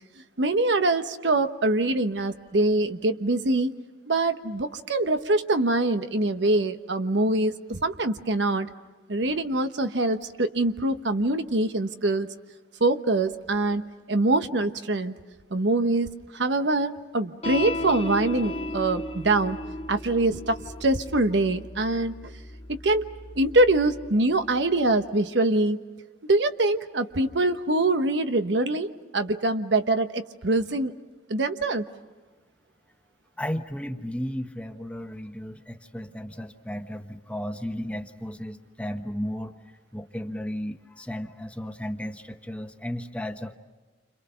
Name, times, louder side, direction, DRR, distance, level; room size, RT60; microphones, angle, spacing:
voice 1, 0.4-3.7 4.1-8.7 9.1-12.3 12.8-15.1 15.5-19.6 19.9-22.2 22.7-25.8 26.3-30.9 31.3-31.9, right 2 dB, 80° right, 9 dB, 1.1 m, -24 dB
sound 1, 17.4-24.1, left 1 dB, 35° left, 1.4 m, -35 dB
voice 2, 33.4-39.5 39.9-43.6, equal, 5° left, 6 dB, 1.1 m, -34 dB
29.5 x 26.5 x 5.7 m, 1.3 s
head